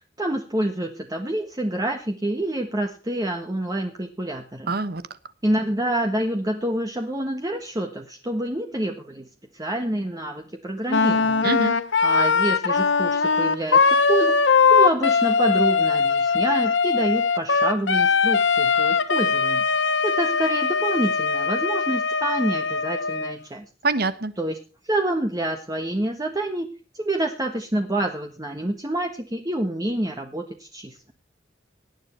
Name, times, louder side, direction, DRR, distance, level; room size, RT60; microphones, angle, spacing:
voice 1, 0.2-4.7 5.4-9.3 9.5-11.5 12.0-14.4 14.7-19.6 20.0-23.6 24.4-24.6 24.8-26.7 26.9-31.1, right 1 dB, 20° right, 1.4 m, -27 dB
voice 2, 4.7-5.0 11.4-11.8 23.8-24.3, right 3 dB, 55° right, 1.2 m, -24 dB
Wind instrument woodwind instrument, 10.9-23.4, left 5 dB, 75° left, 1.1 m, -21 dB
18.5 x 10.5 x 4.4 m
head